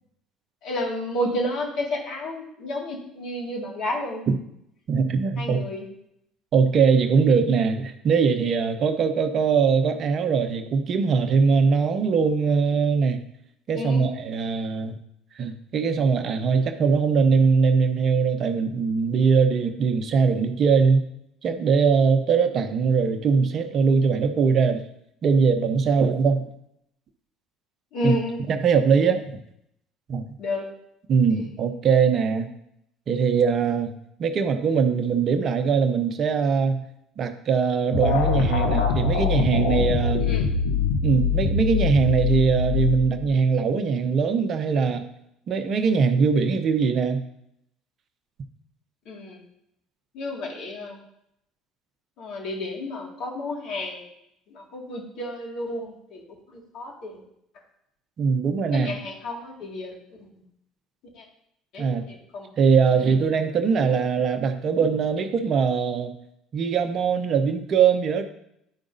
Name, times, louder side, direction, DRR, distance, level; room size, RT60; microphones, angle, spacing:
voice 1, 0.6-4.2 5.4-5.8 13.7-14.1 27.9-28.4 30.4-30.6 40.2-40.5 49.1-49.4 50.1-51.0 52.2-54.1 54.5-56.2 56.5-57.2 58.7-60.3 61.1-61.2 61.7-62.5 62.9-63.9, left 1 dB, 60° left, -1 dB, 2.0 m, -31 dB
voice 2, 4.9-5.6 6.5-13.2 13.7-15.0 15.3-21.1 21.4-24.8 25.2-26.5 28.0-28.1 28.5-29.4 30.1-30.3 31.1-32.5 33.1-33.9 34.2-36.8 37.2-40.2 41.0-45.0 45.5-47.2 58.2-58.9 61.8-62.1 62.6-66.1 66.5-68.2, right 5 dB, 50° right, 9 dB, 0.7 m, -21 dB
sound 1, 37.9-43.4, left 5 dB, 80° left, 0.9 m, -23 dB
10.5 x 4.8 x 2.7 m, 0.77 s
hypercardioid pair, 65°, 0 cm